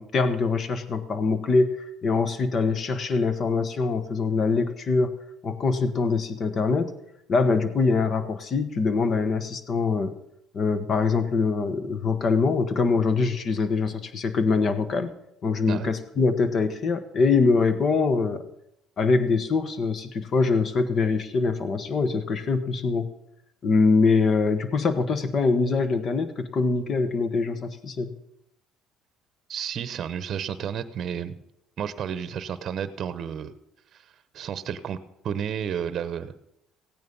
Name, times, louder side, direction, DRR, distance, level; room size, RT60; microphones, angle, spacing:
voice 1, 0.0-1.7 2.0-5.1 5.4-6.9 7.3-10.1 10.5-15.1 15.4-18.4 19.0-23.1 23.6-28.1, left 4 dB, 45° left, 11 dB, 1.3 m, -23 dB
voice 2, 29.5-31.4 31.8-33.5 33.9-35.0 35.2-36.3, right 8 dB, 50° right, 13 dB, 0.9 m, -32 dB
15.5 x 9.3 x 5.4 m, 0.78 s
cardioid pair, 105°, 0 cm